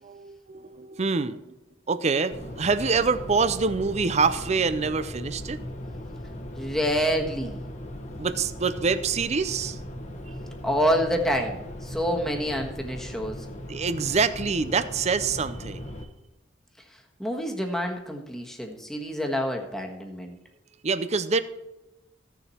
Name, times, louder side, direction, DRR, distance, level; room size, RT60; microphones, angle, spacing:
voice 1, 0.0-1.4 1.9-5.6 8.2-9.8 13.7-15.9 20.8-21.4, right 4 dB, 35° right, 13 dB, 0.5 m, -25 dB
sound 1, 2.3-16.0, equal, 40° left, 1.2 m, -38 dB
voice 2, 6.6-7.6 10.6-13.5 17.2-20.4, equal, ahead, 1 dB, 1.4 m, -27 dB
15.0 x 7.0 x 4.4 m, 1.0 s
head